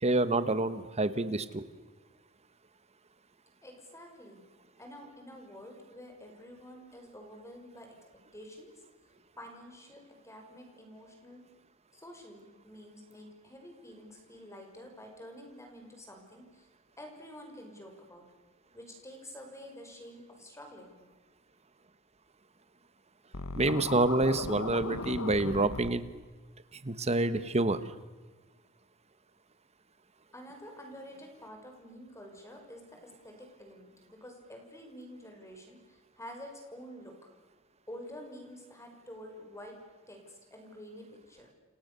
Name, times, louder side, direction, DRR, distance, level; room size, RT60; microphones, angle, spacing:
voice 1, 0.0-1.7 23.5-26.0 26.8-27.8, right 2 dB, 30° right, 13 dB, 1.4 m, -27 dB
voice 2, 3.6-4.4 4.8-8.0 8.3-8.7 9.3-11.4 11.9-16.7 17.0-18.3 18.7-21.0 30.3-37.3 37.9-39.8 40.1-41.5, equal, 15° left, 3 dB, 5.8 m, -49 dB
Scratching (performance technique), 23.3-25.9, left 3 dB, 75° left, 1.5 m, -37 dB
29.5 x 27.5 x 7.0 m, 1.3 s
head